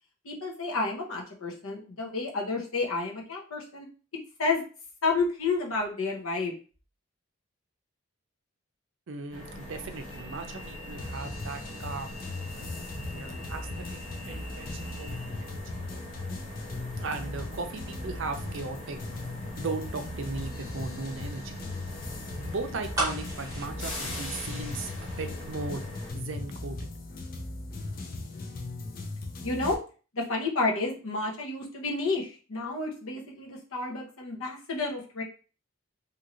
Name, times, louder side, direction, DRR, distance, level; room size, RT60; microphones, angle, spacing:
voice 1, 0.2-3.9 4.4-4.6 5.0-6.5 29.4-29.8 30.1-35.2, left 3 dB, 85° left, -1 dB, 0.9 m, -30 dB
voice 2, 9.1-12.2 12.5-12.7 13.1-14.0 14.3-15.6 17.0-19.0 19.6-21.6 22.5-24.9 25.2-25.8 26.1-26.8, right 3 dB, 65° right, 7 dB, 0.5 m, -37 dB
sound 1, 9.3-26.1, left 1 dB, 65° left, 1.4 m, -42 dB
sound 2, 11.0-29.7, left 2 dB, 45° left, 0.5 m, -38 dB
sound 3, 22.9-25.0 25.3-25.4, right 2 dB, 15° right, 0.8 m, -33 dB
2.8 x 2.6 x 2.9 m, 0.37 s
head